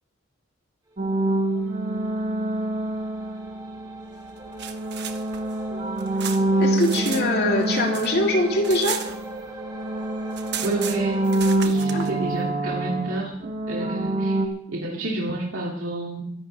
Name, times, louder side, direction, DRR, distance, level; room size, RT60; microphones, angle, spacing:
sound 1, 1.0-3.9 4.6-9.4 9.6-14.5, right 2 dB, 40° right, 1.5 m, -26 dB
sound 2, 1.2-11.6, right 2 dB, 20° right, 2.1 m, -41 dB
sound 3, 4.3-7.2 7.5-9.7 10.0-10.1 10.3-12.1, right 9 dB, 55° right, 1.2 m, -35 dB
voice 1, 6.6-9.0 11.9-12.1, left 1 dB, 55° left, -1 dB, 3.2 m, -23 dB
voice 2, 10.5-11.2 11.6-13.4 13.7-14.4 14.7-16.2, right 2 dB, 75° right, -3 dB, 2.5 m, -29 dB
22.0 x 11.0 x 3.4 m, 0.70 s
head